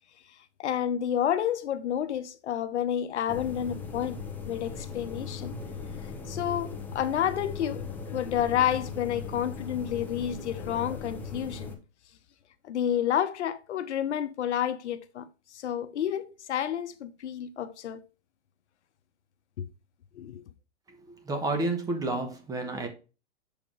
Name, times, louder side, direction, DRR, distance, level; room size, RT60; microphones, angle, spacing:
voice 1, 0.6-5.5 6.3-11.7 12.6-18.0 19.6-19.7 20.1-20.4, left 10 dB, 80° left, 0.9 m, -30 dB
sound 1, 3.3-11.8, left 5 dB, 5° left, 0.7 m, -38 dB
voice 2, 21.0-22.9, right 2 dB, 10° right, 1.0 m, -30 dB
7.2 x 5.3 x 3.7 m
hypercardioid pair, 150°, 34 cm